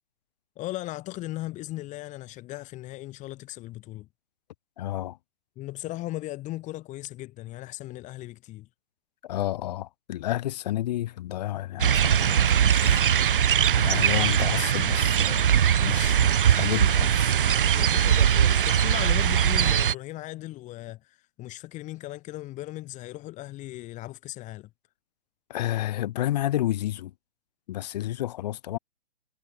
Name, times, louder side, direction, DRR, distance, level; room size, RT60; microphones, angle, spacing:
voice 1, 0.6-4.1 5.6-8.7 12.8-13.0 17.7-24.7, left 17 dB, 25° left, 5.4 m, -37 dB
voice 2, 4.8-5.2 9.2-13.2 13.8-15.4 15.8-17.3 25.5-27.1 27.7-28.8, left 14 dB, 40° left, 1.7 m, -31 dB
sound 1, 11.8-19.9, right 9 dB, 55° right, 2.0 m, -21 dB
figure-of-eight pair, 120°, 32 cm